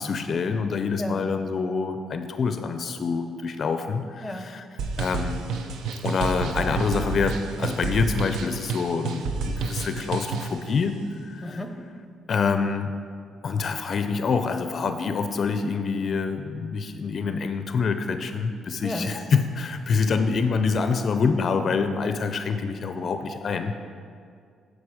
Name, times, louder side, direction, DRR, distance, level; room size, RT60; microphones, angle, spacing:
voice 1, 0.0-4.7 5.0-5.5 6.0-11.6 12.3-13.0 13.4-23.7, left 5 dB, 50° left, 8 dB, 0.4 m, -26 dB
voice 2, 1.0-1.3 4.2-4.6 11.4-12.0 18.8-19.2, left 1 dB, 5° left, 6 dB, 0.8 m, -34 dB
sound 1, 4.8-10.6, right 4 dB, 80° right, 0.5 m, -30 dB
9.7 x 5.1 x 4.8 m, 2.3 s
cardioid pair, 90°, 0 cm